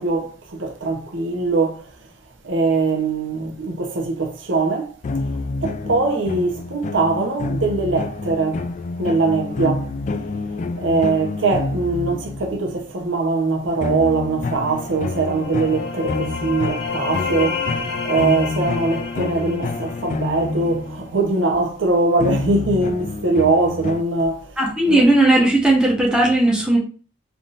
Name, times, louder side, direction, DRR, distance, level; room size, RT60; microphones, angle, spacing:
voice 1, 0.0-1.9 2.4-5.2 5.6-8.7 9.0-9.9 10.8-24.5 24.8-25.1, right 3 dB, 80° right, 0.8 m, -22 dB
sound 1, 5.0-12.7 13.8-21.3 22.2-24.0, left 3 dB, 40° left, 0.3 m, -28 dB
sound 2, 14.8-20.5, left 5 dB, 85° left, 1.2 m, -30 dB
voice 2, 24.6-26.8, right 1 dB, 5° right, 1.1 m, -16 dB
4.0 x 3.5 x 2.5 m
head